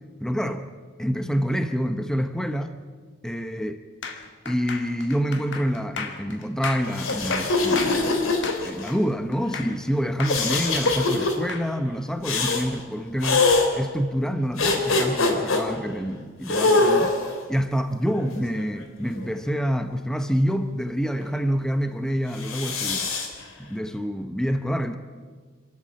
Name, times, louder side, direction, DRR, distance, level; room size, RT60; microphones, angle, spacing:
voice 1, 0.2-0.7 1.0-2.8 3.2-3.8 4.4-8.3 8.6-17.2 17.5-23.1 23.6-25.0, equal, 5° left, 8 dB, 0.8 m, -27 dB
sound 1, 4.0-9.9 10.2-11.7, left 4 dB, 60° left, 2.1 m, -34 dB
sound 2, 6.9-8.9 10.2-11.3 12.2-12.7 13.2-13.7 14.6-15.6 16.5-17.4 18.2-19.3 22.3-23.3, left 3 dB, 85° left, 3.1 m, -23 dB
26.5 x 12.5 x 8.8 m, 1.5 s
head